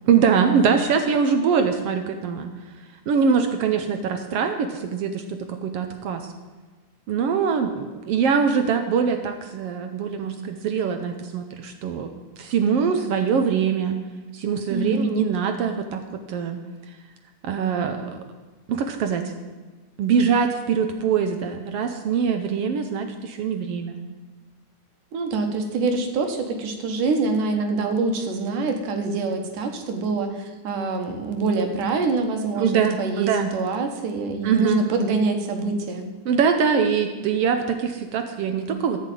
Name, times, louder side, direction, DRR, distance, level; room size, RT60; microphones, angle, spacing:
voice 1, 0.0-2.5 3.1-6.3 7.1-12.1 12.4-14.0 14.3-16.6 17.4-18.2 18.7-19.3 20.0-24.0 32.5-33.5 34.4-34.8 36.2-39.0, right 6 dB, 75° right, 6 dB, 1.4 m, -23 dB
voice 2, 14.7-15.3 25.1-32.7 33.0-36.1, right 3 dB, 90° right, 5 dB, 2.8 m, -25 dB
14.5 x 5.7 x 9.0 m, 1.3 s
omnidirectional pair, 3.5 m